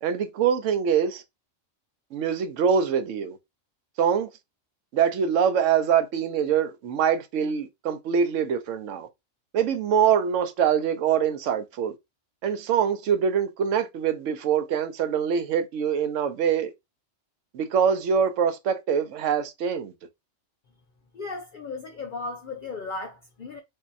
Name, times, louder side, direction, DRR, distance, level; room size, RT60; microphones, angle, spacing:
voice 1, 0.0-1.2 2.1-3.4 4.0-4.3 4.9-9.1 9.5-11.9 12.4-16.7 17.5-19.9, right 7 dB, 85° right, 1.0 m, -24 dB
voice 2, 21.1-23.6, left 3 dB, 55° left, 0.6 m, -35 dB
3.5 x 2.7 x 2.5 m
omnidirectional pair, 1.3 m